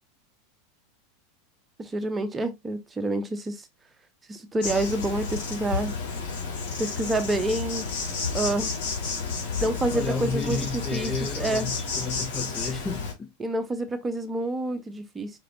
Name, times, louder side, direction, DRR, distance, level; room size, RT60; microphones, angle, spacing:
voice 1, 1.8-3.6 4.3-5.9 6.8-7.8 8.3-8.7 9.6-11.7 13.4-15.3, right 2 dB, 15° right, 0.9 m, -28 dB
Insect, 4.6-13.1, left 4 dB, 65° left, 2.1 m, -31 dB
voice 2, 9.9-13.3, left 4 dB, 20° left, 0.5 m, -32 dB
5.2 x 3.2 x 2.7 m
supercardioid pair, 120°, 0 cm